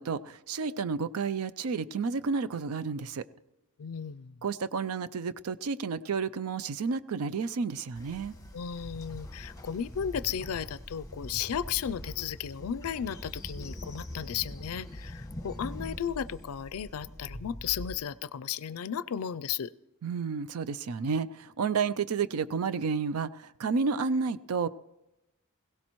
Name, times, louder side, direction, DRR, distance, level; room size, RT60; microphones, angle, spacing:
voice 1, 0.0-3.2 4.4-8.3 20.0-24.7, right 5 dB, 80° right, 14 dB, 0.5 m, -31 dB
voice 2, 3.8-4.4 8.5-19.7, left 8 dB, 75° left, 18 dB, 0.4 m, -34 dB
Train, 7.9-17.9, left 1 dB, 15° left, 1.5 m, -43 dB
21.5 x 17.0 x 3.1 m, 0.93 s
head